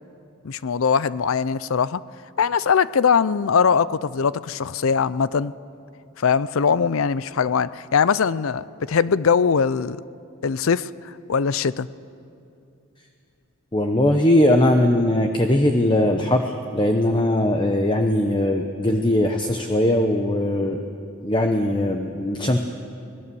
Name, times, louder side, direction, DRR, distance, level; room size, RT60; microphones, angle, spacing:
voice 1, 0.4-2.0 2.4-5.5 6.2-10.0 10.4-10.9 11.3-11.9, left 6 dB, 75° left, 17 dB, 0.5 m, -21 dB
voice 2, 13.7-20.8 21.2-22.6, left 1 dB, 20° left, 5 dB, 0.9 m, -20 dB
25.0 x 18.5 x 6.9 m, 2.6 s
head